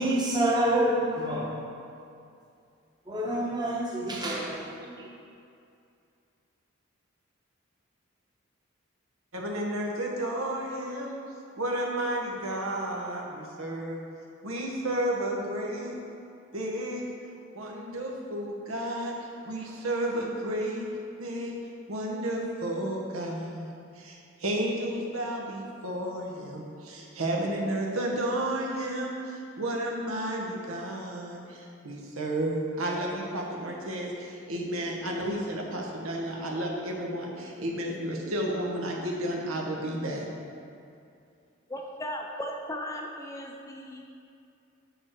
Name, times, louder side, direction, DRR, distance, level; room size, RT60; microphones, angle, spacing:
voice 1, 0.0-1.5 3.1-5.1, right 1 dB, 20° right, -3 dB, 1.1 m, -27 dB
voice 2, 9.3-11.2 11.6-14.0 14.4-16.0 16.5-17.0 17.5-19.1 19.4-20.9 21.2-21.5 21.9-23.7 24.0-40.3, right 1 dB, 85° right, -1 dB, 1.2 m, -32 dB
voice 3, 41.7-44.1, equal, 15° left, 1 dB, 0.5 m, -37 dB
7.1 x 6.4 x 4.6 m, 2.5 s
head